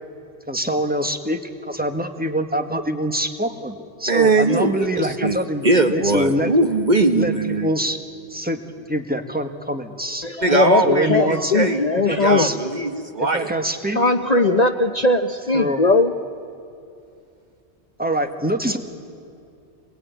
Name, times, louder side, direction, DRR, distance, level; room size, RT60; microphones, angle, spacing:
voice 1, 0.5-6.5 7.1-8.0 8.3-8.6 8.9-10.3 10.8-11.5 11.9-12.6 13.2-14.0 15.5-15.8 18.0-18.8, equal, 10° right, 6 dB, 1.5 m, -24 dB
voice 2, 4.1-5.4 5.6-7.7 10.4-13.5, right 2 dB, 40° right, 6 dB, 1.3 m, -20 dB
voice 3, 10.2-12.5 13.5-13.6 14.0-16.1, left 3 dB, 40° left, 7 dB, 0.9 m, -19 dB
27.5 x 21.0 x 9.5 m, 2.5 s
omnidirectional pair, 1.2 m